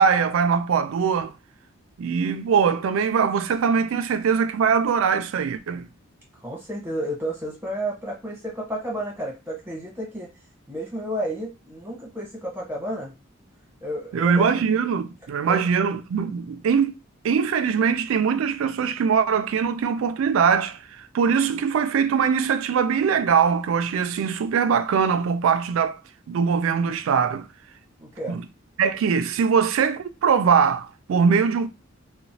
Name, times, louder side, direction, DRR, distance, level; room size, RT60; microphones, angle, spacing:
voice 1, 0.0-1.3 2.0-5.9 14.1-16.9 17.2-26.0 26.3-27.5 28.8-31.7, right 6 dB, 85° right, 0.3 m, -22 dB
voice 2, 6.4-10.3 10.7-13.1 13.8-14.6 15.4-15.7 28.0-28.4, right 1 dB, 10° right, 1.0 m, -31 dB
2.9 x 2.1 x 2.6 m
head